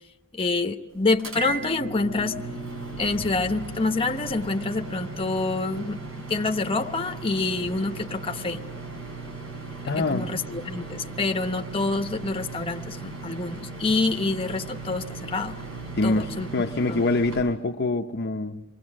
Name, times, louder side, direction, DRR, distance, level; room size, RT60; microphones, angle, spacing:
voice 1, 0.3-2.4 3.0-6.0 6.3-8.6 10.0-15.6 16.0-16.5 16.9-17.0, left 3 dB, 25° left, 5 dB, 1.0 m, -27 dB
sound 1, 1.2-17.4, right 3 dB, 75° right, 7.1 m, -37 dB
voice 2, 9.9-10.3 15.9-16.3 16.5-18.6, left 2 dB, 50° left, 4 dB, 0.8 m, -24 dB
28.0 x 22.5 x 6.3 m, 1.0 s
head